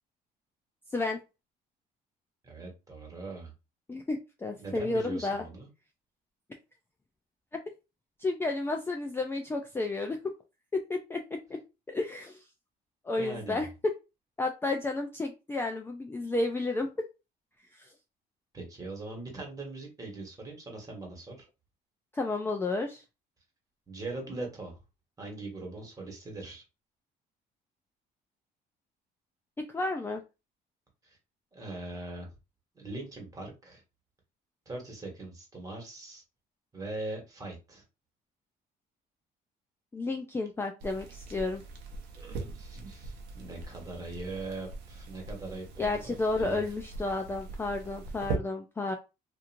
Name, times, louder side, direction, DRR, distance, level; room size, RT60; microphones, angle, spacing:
voice 1, 2.4-3.5 4.6-5.7 13.2-13.6 18.5-21.4 23.9-24.8 25.2-26.6 31.0-31.2 31.5-32.3 32.7-33.8 34.7-36.2 36.7-37.8 42.1-46.6, right 2 dB, 20° right, 1 dB, 1.3 m, -41 dB
voice 2, 3.9-5.4 8.2-10.2 10.7-11.6 11.9-12.4 13.0-13.7 14.4-16.9 17.7-17.9 22.1-23.0 29.7-30.2 39.9-41.6 45.8-49.0, left 2 dB, 15° left, 3 dB, 0.4 m, -32 dB
sound 1, 40.8-48.4, right 3 dB, 80° right, 0.7 m, -41 dB
2.9 x 2.5 x 2.5 m, 0.27 s
cardioid pair, 110°, 17 cm